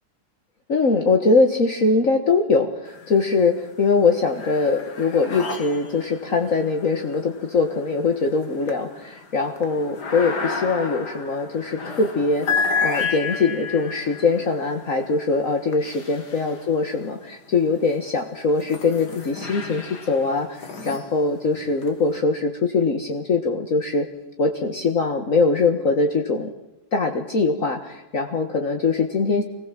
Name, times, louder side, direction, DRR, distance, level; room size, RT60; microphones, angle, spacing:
voice 1, 0.7-24.1 24.4-26.5 26.9-29.4, left 4 dB, 55° left, 5 dB, 2.0 m, -22 dB
sound 1, 2.9-3.5 3.9-17.1 17.7-22.2, left 4 dB, 80° left, 2.9 m, -32 dB
25.5 x 19.5 x 7.6 m, 0.92 s
omnidirectional pair, 1.7 m